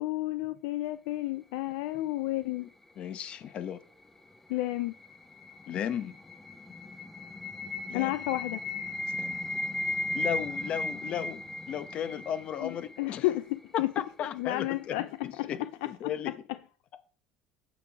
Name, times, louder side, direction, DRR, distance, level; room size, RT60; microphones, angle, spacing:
voice 1, 0.0-2.7 4.5-4.9 7.9-8.6 12.6-13.9 14.3-16.1, left 17 dB, 80° left, 0.4 m, -32 dB
voice 2, 3.0-3.8 5.7-6.1 7.9-8.1 9.2-9.4 10.1-11.4 11.7-13.3 13.7-16.3, left 9 dB, 50° left, 0.9 m, -35 dB
sound 1, 4.3-13.3, left 1 dB, 10° left, 1.0 m, -36 dB
8.9 x 6.2 x 3.5 m
supercardioid pair, 80°, 2 cm